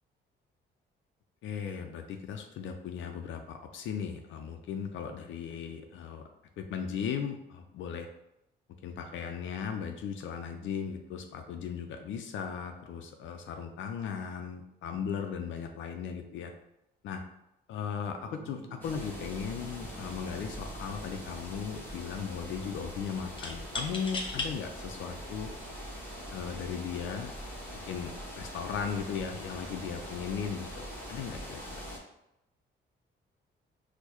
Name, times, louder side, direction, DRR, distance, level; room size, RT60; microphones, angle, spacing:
voice 1, 1.4-6.2 6.6-8.1 8.8-16.5 17.0-17.2 17.7-25.5 26.3-27.3 27.9-31.8, left 7 dB, 75° left, 5 dB, 0.4 m, -37 dB
sound 1, 18.2-24.8, right 2 dB, 75° right, 0.6 m, -53 dB
sound 2, 18.8-32.0, equal, 10° left, 0.9 m, -43 dB
sound 3, 20.3-20.5 20.8-21.5 23.4-24.5 25.2-25.3 26.2-26.5, left 2 dB, 25° left, 0.6 m, -37 dB
4.5 x 2.1 x 2.9 m, 0.85 s
cardioid pair, 90°, 20 cm